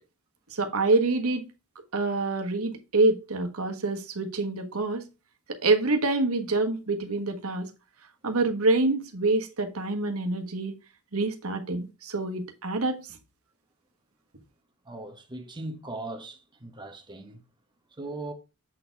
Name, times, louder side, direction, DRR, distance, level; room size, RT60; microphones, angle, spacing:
voice 1, 0.5-1.5 1.9-5.0 5.5-7.7 8.2-10.7 11.1-13.1, right 2 dB, 80° right, 1.3 m, -26 dB
voice 2, 14.8-17.4 18.0-18.3, right 2 dB, 20° right, 1.1 m, -39 dB
7.5 x 4.4 x 4.5 m
head